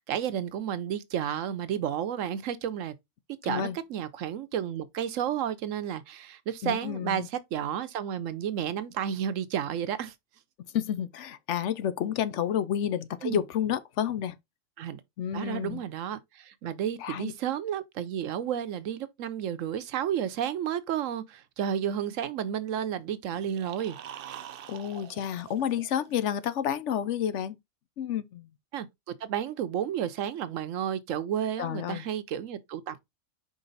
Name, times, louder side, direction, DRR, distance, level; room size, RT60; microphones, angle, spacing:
voice 1, 0.1-2.9 3.4-10.1 13.2-13.4 14.8-15.0 15.3-24.0 28.7-28.9 29.2-33.0, right 9 dB, 75° right, 1.1 m, -32 dB
voice 2, 3.4-3.8 6.6-7.3 10.7-14.4 15.2-15.8 17.0-17.3 24.7-27.6 28.0-28.5 31.6-32.0, left 9 dB, 70° left, 0.9 m, -30 dB
sound 1, 23.3-26.4, right 10 dB, 60° right, 0.6 m, -45 dB
5.1 x 4.7 x 3.9 m
omnidirectional pair, 1.4 m